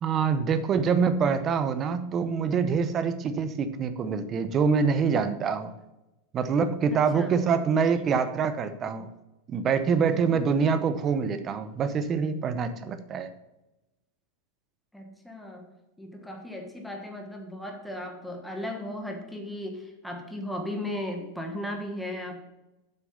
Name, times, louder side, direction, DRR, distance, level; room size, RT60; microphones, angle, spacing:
voice 1, 0.0-5.7 6.3-9.1 9.5-13.3, right 6 dB, 25° right, 11 dB, 0.8 m, -25 dB
voice 2, 6.9-7.4 10.1-10.5 14.9-22.4, left 1 dB, ahead, 3 dB, 1.4 m, -36 dB
7.6 x 6.2 x 7.1 m, 0.99 s
supercardioid pair, 145°, 0 cm